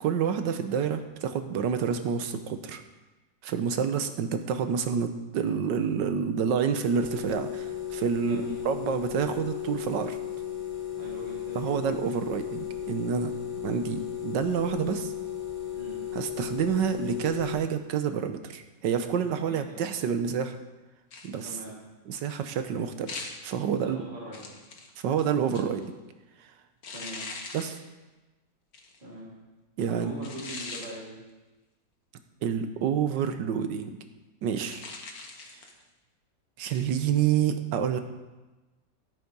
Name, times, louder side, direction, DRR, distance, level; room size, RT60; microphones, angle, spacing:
voice 1, 0.0-2.8 3.4-10.2 11.5-15.1 16.1-20.6 21.2-21.5 22.1-24.0 25.0-25.9 27.5-27.8 29.8-30.1 32.4-33.9 34.4-34.8 36.6-38.0, right 7 dB, 90° right, 9 dB, 1.5 m, -28 dB
sound 1, 6.8-17.6, left 10 dB, 20° left, 1.7 m, -35 dB
voice 2, 8.1-8.6 10.9-11.7 15.7-16.0 19.2-19.8 21.4-21.8 23.7-24.6 26.9-27.2 29.0-29.3 29.8-31.2, right 1 dB, 25° right, -6 dB, 3.7 m, -42 dB
sound 2, 21.1-21.6 23.1-23.5 24.3-25.9 26.8-27.8 28.7-29.0 30.2-30.9 34.6-35.8 36.7-36.9, left 3 dB, 60° left, 1.8 m, -41 dB
13.5 x 8.3 x 5.4 m, 1.2 s
omnidirectional pair, 1.9 m